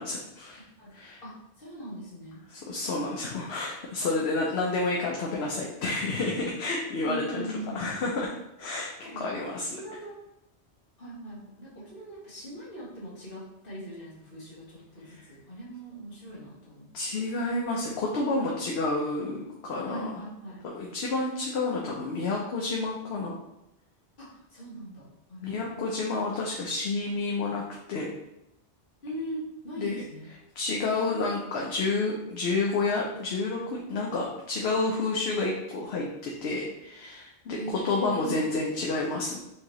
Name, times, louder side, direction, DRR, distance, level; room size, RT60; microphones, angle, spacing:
voice 1, 0.0-0.6 0.9-1.2 2.7-7.4 7.7-8.3 8.6-9.7 16.9-20.2 20.7-23.3 25.4-27.6 27.9-28.1 29.8-30.0 30.6-39.4, left 3 dB, 70° left, -2 dB, 0.9 m, -30 dB
voice 2, 0.8-2.4 7.0-7.9 9.0-9.3 9.7-10.2 11.0-17.2 19.9-20.6 24.2-26.0 29.0-30.3 37.5-38.4, right 1 dB, 50° left, -7 dB, 1.5 m, -40 dB
4.5 x 2.8 x 3.0 m, 0.85 s
omnidirectional pair, 1.2 m